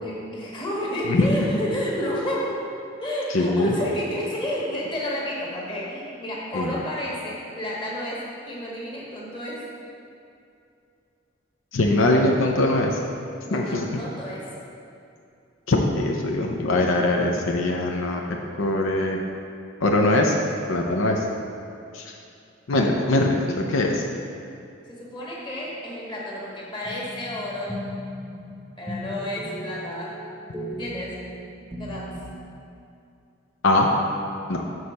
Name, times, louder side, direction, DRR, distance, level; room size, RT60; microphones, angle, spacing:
voice 1, 0.0-2.6 3.0-9.7 13.4-14.5 24.9-27.9 28.8-30.1 30.7-31.2 31.8-32.1, equal, 25° left, -5 dB, 1.4 m, -31 dB
voice 2, 1.1-1.6 3.3-3.8 6.5-6.8 11.7-13.0 13.5-14.0 15.7-19.2 19.8-20.4 20.7-21.2 21.9-22.0 22.7-24.0 33.6-33.9 34.5-34.6, left 2 dB, 85° left, 1 dB, 0.6 m, -22 dB
sound 1, 26.8-32.4, equal, 10° right, 0.8 m, -37 dB
6.4 x 4.1 x 6.4 m, 2.6 s
head